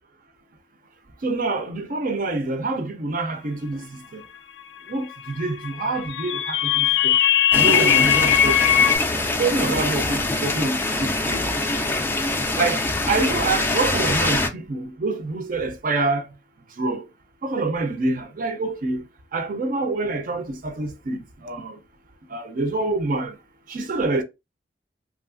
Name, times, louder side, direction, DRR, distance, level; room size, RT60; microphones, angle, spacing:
voice 1, 1.2-4.2 4.9-7.2 7.5-8.9 9.4-11.5 12.6-16.3 16.8-17.0 17.4-19.0 19.3-21.8 22.3-23.4 23.7-24.2, right 3 dB, 50° right, 0.5 m, -26 dB
sound 1, 5.8-9.0, left 10 dB, 85° left, 0.4 m, -18 dB
sound 2, 7.5-14.5, left 2 dB, 10° left, 0.3 m, -24 dB
3.1 x 2.3 x 2.4 m
head